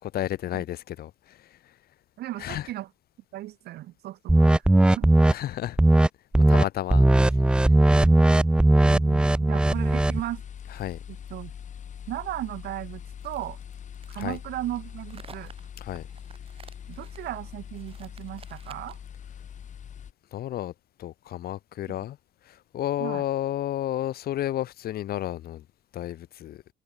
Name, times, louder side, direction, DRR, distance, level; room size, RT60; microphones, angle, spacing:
voice 1, 0.0-1.4 2.4-2.7 5.3-5.8 6.4-7.0 10.7-11.0 14.1-14.4 15.8-16.1 20.3-20.7 21.0-22.2 22.5-25.6 25.9-26.6, left 12 dB, 65° left, 3.7 m, -32 dB
voice 2, 2.2-2.9 3.3-4.5 4.9-5.1 8.0-8.3 8.8-10.4 11.3-11.5 12.1-13.6 14.1-15.5 16.9-19.0 21.9-22.0 23.0-23.2, right 15 dB, 75° right, 2.6 m, -36 dB
sound 1, 4.3-5.3 5.8-6.1 6.3-6.6 6.9-10.2, right 1 dB, 5° right, 0.4 m, -18 dB
sound 2, 9.7-20.1, left 8 dB, 45° left, 5.1 m, -42 dB
sound 3, 13.2-19.1, right 6 dB, 35° right, 7.8 m, -52 dB
cardioid pair, 110°, 17 cm